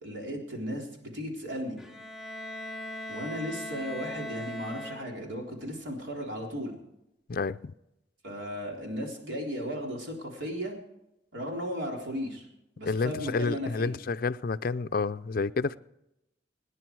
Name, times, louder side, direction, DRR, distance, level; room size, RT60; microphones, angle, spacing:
voice 1, 0.0-1.8 3.1-6.7 8.2-10.8 11.3-12.5 12.8-13.9, equal, 85° right, 0 dB, 3.8 m, -35 dB
Bowed string instrument, 1.8-5.4, left 1 dB, ahead, 0.9 m, -39 dB
voice 2, 7.3-7.7 12.9-15.8, left 4 dB, 50° left, 15 dB, 0.5 m, -29 dB
26.5 x 10.0 x 4.7 m, 0.87 s
head